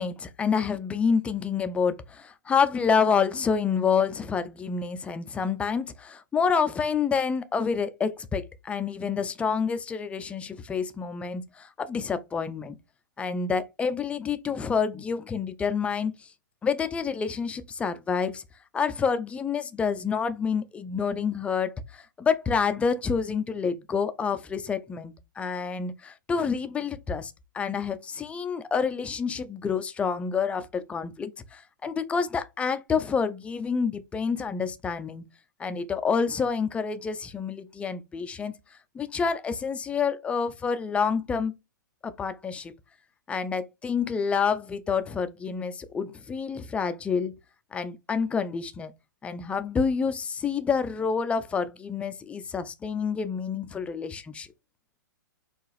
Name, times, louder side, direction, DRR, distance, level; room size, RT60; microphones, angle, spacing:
voice 1, 0.0-12.7 13.2-16.3 16.6-18.4 18.7-35.2 35.6-38.5 38.9-41.5 42.0-42.7 43.3-47.3 47.7-48.9 49.2-54.5, left 6 dB, 10° left, 0.4 m, -28 dB
4.5 x 3.0 x 3.2 m
figure-of-eight pair, 110°, 11 cm